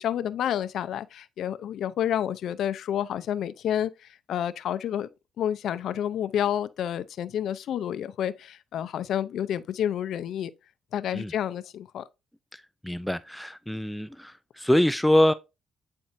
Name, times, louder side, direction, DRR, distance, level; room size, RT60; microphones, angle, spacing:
voice 1, 0.0-5.1 5.4-10.5 10.9-12.0, left 10 dB, 70° left, 0.5 m, -29 dB
voice 2, 12.5-15.3, left 1 dB, 5° left, 0.4 m, -24 dB
8.7 x 4.3 x 2.6 m
cardioid pair, 90°, 0 cm